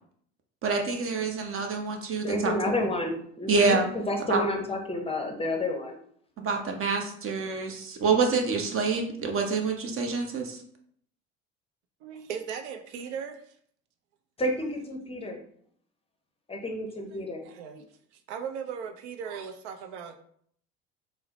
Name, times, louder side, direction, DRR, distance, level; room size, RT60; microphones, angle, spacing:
voice 1, 0.6-2.5 3.5-3.8 4.3-4.4 6.4-10.6, right 4 dB, 40° right, 3 dB, 0.8 m, -27 dB
voice 2, 2.2-6.0 14.4-15.4 16.5-17.5, left 1 dB, 15° left, 3 dB, 0.7 m, -30 dB
voice 3, 12.0-13.5 17.4-17.9 18.3-20.2, right 7 dB, 80° right, 7 dB, 0.5 m, -37 dB
3.8 x 2.0 x 2.8 m, 0.62 s
hypercardioid pair, 65°, 33 cm